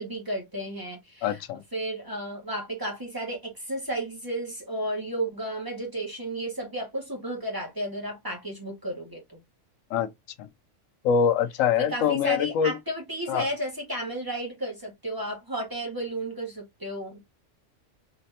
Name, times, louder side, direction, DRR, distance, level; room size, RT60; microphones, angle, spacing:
voice 1, 0.0-1.4 1.7-9.4 11.8-17.2, right 1 dB, 15° right, 1.7 m, -33 dB
voice 2, 1.2-1.6 9.9-10.1 10.4-10.5 11.0-12.8 13.3-13.5, left 7 dB, 85° left, 1.0 m, -24 dB
4.1 x 3.1 x 2.8 m
omnidirectional pair, 1.3 m